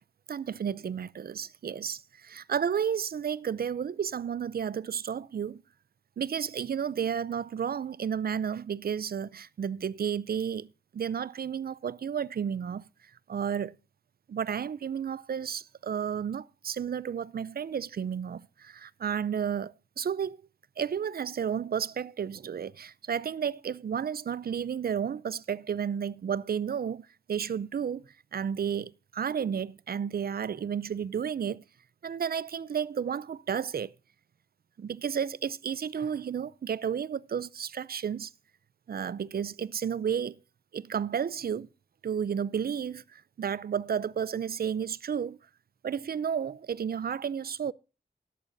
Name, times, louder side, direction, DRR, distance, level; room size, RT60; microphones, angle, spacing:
voice 1, 0.3-5.6 6.2-12.9 13.3-13.7 14.3-20.4 20.8-28.0 28.3-31.6 32.0-33.9 34.8-38.3 38.9-40.4 40.7-41.7 42.0-45.4 45.8-47.7, right 7 dB, 60° right, 0.4 m, -32 dB
13.0 x 11.0 x 2.6 m
wide cardioid pair, 110°, 18 cm